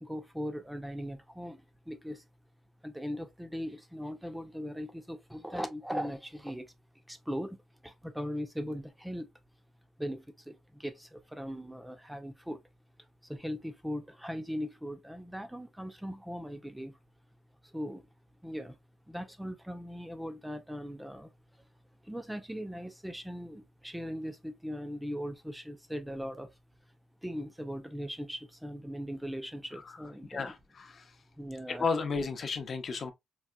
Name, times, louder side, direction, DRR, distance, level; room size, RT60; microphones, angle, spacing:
voice 1, 0.0-2.2 2.8-6.7 7.1-7.6 7.8-9.3 10.0-12.6 13.2-17.0 17.6-18.1 18.4-18.8 19.1-21.3 22.0-26.5 27.2-30.5 31.4-31.9, equal, 5° right, 0.5 m, -39 dB
voice 2, 29.7-31.2 31.7-33.1, left 4 dB, 45° left, 0.6 m, -34 dB
4.0 x 2.3 x 2.2 m
cardioid pair, 110°, 0 cm